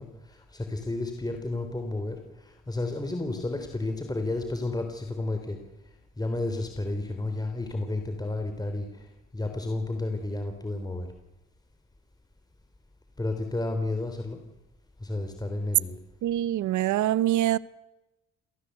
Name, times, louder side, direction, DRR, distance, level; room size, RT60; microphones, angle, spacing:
voice 1, 0.0-2.2 2.4-5.6 6.2-8.9 9.3-11.1 13.2-14.4 15.0-16.0, left 2 dB, 15° left, 5 dB, 3.4 m, -31 dB
voice 2, 16.2-17.6, right 13 dB, 75° right, 19 dB, 0.9 m, -24 dB
28.5 x 18.5 x 8.1 m, 0.98 s
cardioid pair, 90°, 30 cm